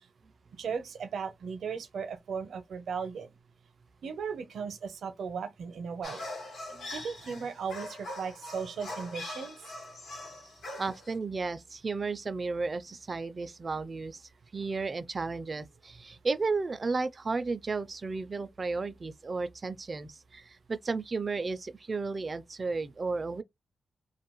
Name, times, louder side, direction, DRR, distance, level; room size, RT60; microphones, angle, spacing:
voice 1, 0.6-3.3 4.0-6.2 6.9-9.6, right 6 dB, 80° right, 0.6 m, -36 dB
sound 1, 6.0-11.1, left 1 dB, 80° left, 1.1 m, -42 dB
voice 2, 10.8-23.4, right 4 dB, 35° right, 0.3 m, -33 dB
2.5 x 2.3 x 2.9 m
cardioid pair, 100°, 0 cm